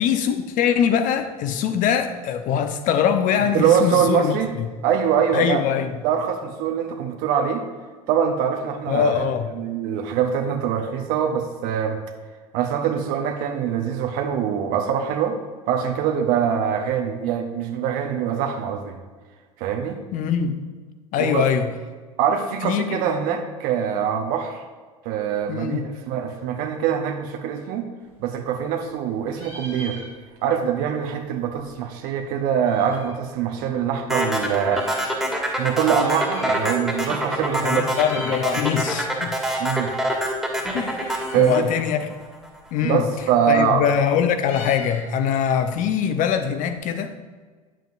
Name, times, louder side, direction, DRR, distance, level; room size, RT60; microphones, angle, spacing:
voice 1, 0.0-4.7 5.3-5.9 8.9-9.5 20.1-20.6 21.1-21.7 22.6-23.0 25.5-25.9 37.6-39.4 40.7-42.1 42.7-43.0 43.5-47.1, left 8 dB, 45° left, 8 dB, 0.8 m, -22 dB
voice 2, 3.5-4.6 4.8-5.6 6.0-7.6 8.1-9.2 9.6-12.0 12.5-15.4 15.7-19.0 19.6-20.0 21.2-21.5 22.2-24.6 25.0-27.9 28.2-30.0 30.4-35.2 35.6-37.8 38.5-38.6 39.6-39.9 41.3-41.6 42.8-43.8, right 8 dB, 55° right, 4 dB, 0.8 m, -23 dB
Meow, 28.0-29.0 29.3-30.6 30.8-30.9 31.1-33.2 33.9-35.1 35.8-37.0 37.3-37.5 37.8-38.6 38.9-46.8, left 1 dB, 90° left, 2.2 m, -42 dB
sound 1, 34.1-42.5, equal, ahead, 1.8 m, -25 dB
9.0 x 7.5 x 2.6 m, 1.5 s
hypercardioid pair, 80°, 18 cm